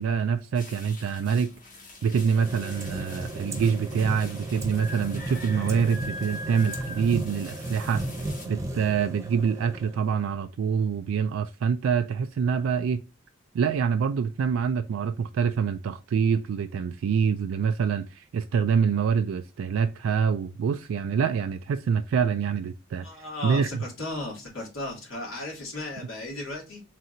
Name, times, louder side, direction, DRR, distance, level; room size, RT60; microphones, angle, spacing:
voice 1, 0.0-1.5 2.0-8.0 8.5-13.0 13.5-23.1 23.4-23.8, right 6 dB, 75° right, 0.3 m, -26 dB
sound 1, 0.5-8.5, left 3 dB, 40° left, 1.8 m, -43 dB
sound 2, 2.1-10.3, right 2 dB, 15° right, 0.9 m, -35 dB
voice 2, 23.0-26.8, left 2 dB, 80° left, 2.7 m, -35 dB
4.3 x 3.8 x 2.6 m
head